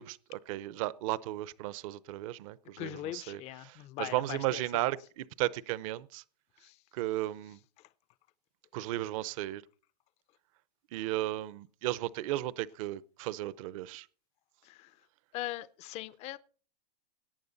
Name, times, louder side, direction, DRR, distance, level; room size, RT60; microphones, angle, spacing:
voice 1, 0.0-6.2 6.9-7.6 8.7-9.6 10.9-14.0, right 16 dB, 55° right, 0.7 m, -35 dB
voice 2, 2.8-4.8 6.6-6.7 14.7-14.9 15.3-16.4, left 15 dB, 30° left, 0.5 m, -40 dB
18.0 x 9.4 x 4.0 m
supercardioid pair, 140°, 21 cm